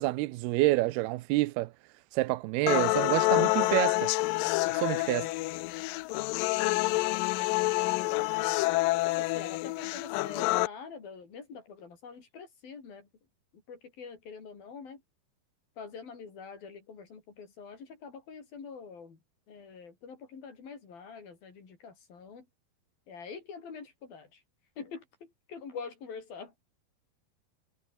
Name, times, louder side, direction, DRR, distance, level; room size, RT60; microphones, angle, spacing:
voice 1, 0.0-1.7 2.1-4.1 4.7-5.3, right 19 dB, 90° right, 2.6 m, -28 dB
sound 1, 2.7-10.7, left 21 dB, 85° left, 2.0 m, -28 dB
voice 2, 5.0-5.5 6.7-8.3 8.8-13.1 13.5-15.0 15.8-19.2 19.5-22.5 23.1-24.4 24.8-26.5, left 5 dB, 65° left, 6.7 m, -45 dB
omnidirectional pair, 4.5 m